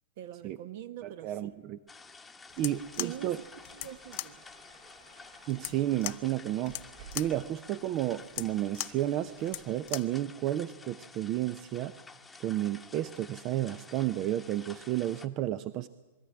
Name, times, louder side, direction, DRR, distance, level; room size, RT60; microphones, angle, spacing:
voice 1, 0.2-1.6 3.0-3.3 3.7-4.4, right 11 dB, 60° right, 12 dB, 1.2 m, -43 dB
voice 2, 1.0-1.8 2.6-3.4 5.5-6.7 7.1-11.9 12.4-15.9, right 13 dB, 40° right, 15 dB, 0.6 m, -32 dB
sound 1, 1.9-15.3, left 4 dB, 10° left, 1.1 m, -52 dB
sound 2, 2.2-7.5, right 4 dB, 75° right, 7.4 m, -56 dB
sound 3, 2.5-10.2, left 20 dB, 50° left, 0.6 m, -41 dB
22.0 x 13.5 x 9.9 m, 1.3 s
hypercardioid pair, 125°, 0 cm